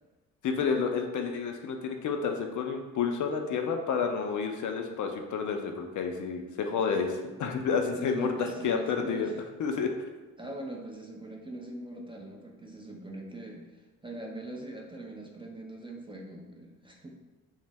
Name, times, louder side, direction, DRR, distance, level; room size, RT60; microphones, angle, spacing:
voice 1, 0.4-9.3 9.6-9.9, left 5 dB, 50° left, 4 dB, 0.4 m, -30 dB
voice 2, 7.9-9.3 10.4-17.1, right 2 dB, 15° right, -1 dB, 0.4 m, -41 dB
2.5 x 2.1 x 3.1 m, 1.2 s
hypercardioid pair, 40°, 41 cm